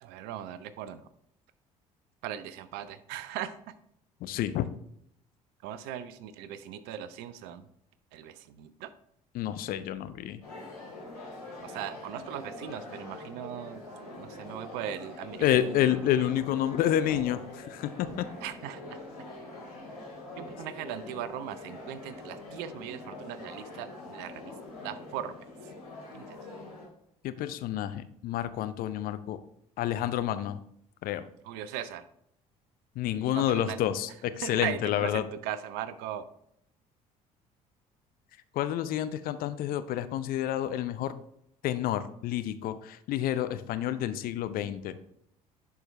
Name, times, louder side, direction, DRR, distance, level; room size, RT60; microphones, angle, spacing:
voice 1, 0.0-1.0 2.2-3.5 5.6-7.6 8.1-8.9 11.6-13.8 14.1-15.9 18.4-18.8 20.4-24.5 24.8-25.3 26.1-26.2 31.5-32.0 33.2-33.8 34.4-36.2, right 10 dB, 60° right, 13 dB, 0.6 m, -38 dB
voice 2, 4.2-4.7 9.3-10.4 15.4-18.2 27.2-29.4 29.8-30.6 31.0-31.2 33.0-35.2 38.5-41.1 41.6-45.0, left 11 dB, 50° left, 12 dB, 0.6 m, -29 dB
sound 1, 10.4-26.9, left 2 dB, 85° left, 2.7 m, -44 dB
10.5 x 4.6 x 3.2 m, 0.73 s
figure-of-eight pair, 55°, 19 cm